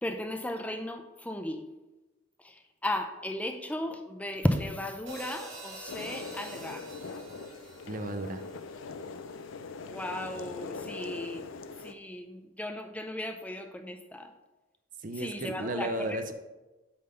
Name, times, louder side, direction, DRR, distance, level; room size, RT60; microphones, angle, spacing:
voice 1, 0.0-1.6 2.4-6.9 9.8-11.5 11.8-14.3 15.2-16.2, left 1 dB, 5° left, 5 dB, 0.5 m, -35 dB
sound 1, 5.1-9.4, right 2 dB, 70° right, 2.2 m, -46 dB
sound 2, 5.9-11.9, left 4 dB, 70° left, 0.5 m, -42 dB
voice 2, 7.9-8.4 15.0-16.3, right 1 dB, 40° right, 8 dB, 0.6 m, -34 dB
8.5 x 3.9 x 5.5 m, 1.1 s
head